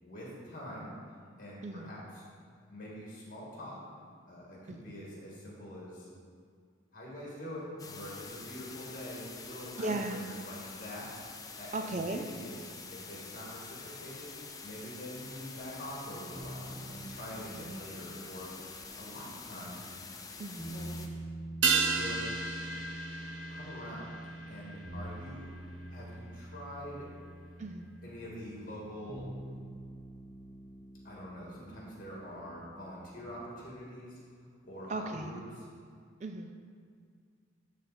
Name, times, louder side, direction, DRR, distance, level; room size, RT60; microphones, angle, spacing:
voice 1, 0.0-0.9 1.4-2.2 2.7-3.8 4.3-6.1 6.9-11.1 11.6-12.6 12.9-14.3 14.6-18.5 19.0-19.9 20.5-20.9 21.9-22.3 23.5-24.1 24.5-25.5 25.9-27.1 28.0-29.3 31.0-34.2 34.6-35.7, equal, 45° left, -5 dB, 2.2 m, -45 dB
sound 1, 7.8-21.1, left 4 dB, 20° left, 0.5 m, -47 dB
voice 2, 9.8-10.2 11.7-12.2 17.5-17.6 20.4-20.6 27.6-27.9 34.9-35.4 36.2-36.5, right 2 dB, 40° right, 5 dB, 0.4 m, -36 dB
sound 2, 16.3-33.3, right 1 dB, ahead, 1.2 m, -46 dB
sound 3, 21.6-26.3 26.6-26.7, right 5 dB, 75° right, 0.7 m, -34 dB
12.0 x 4.1 x 4.3 m, 2.1 s
head